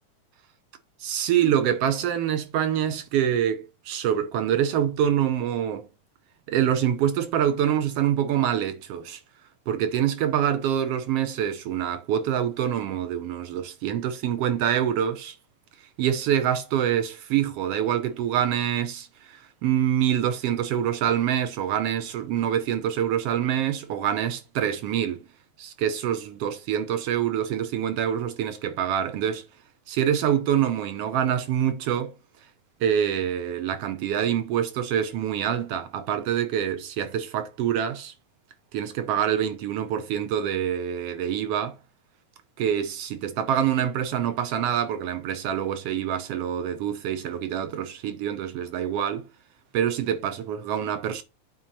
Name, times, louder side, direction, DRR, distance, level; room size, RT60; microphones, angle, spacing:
voice 1, 1.0-5.9 6.5-9.2 9.7-15.3 16.0-25.3 25.6-29.4 29.9-32.1 32.8-38.1 38.7-41.8 42.6-49.3 49.7-51.2, right 9 dB, 75° right, 1.4 m, -25 dB
8.6 x 4.1 x 4.1 m
omnidirectional pair, 3.6 m